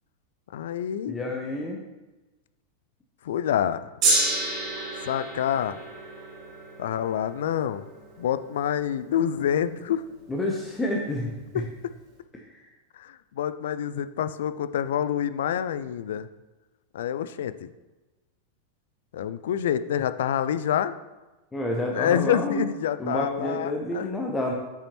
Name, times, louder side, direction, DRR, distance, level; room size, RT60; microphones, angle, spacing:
voice 1, 0.5-1.2 3.2-3.9 5.0-5.8 6.8-7.8 8.2-10.0 11.5-11.7 12.9-16.3 16.9-17.5 19.1-21.0 21.9-24.1, left 9 dB, 60° left, 12 dB, 0.3 m, -27 dB
voice 2, 1.1-1.8 10.3-11.6 12.3-12.6 21.5-22.6 23.0-24.5, left 1 dB, 15° left, 0 dB, 0.9 m, -29 dB
Gong, 4.0-10.4 11.2-11.3, right 2 dB, 35° right, 1.7 m, -30 dB
8.3 x 5.8 x 3.0 m, 1.1 s
figure-of-eight pair, 90°, 0 cm